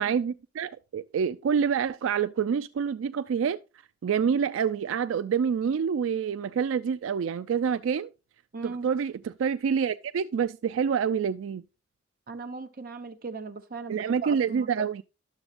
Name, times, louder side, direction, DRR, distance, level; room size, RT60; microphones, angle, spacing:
voice 1, 0.0-3.6 4.0-8.1 8.6-11.6 13.9-15.0, right 7 dB, 85° right, 0.3 m, -27 dB
voice 2, 8.5-8.9 12.3-14.9, right 4 dB, 50° right, 0.9 m, -38 dB
11.0 x 7.0 x 2.5 m
head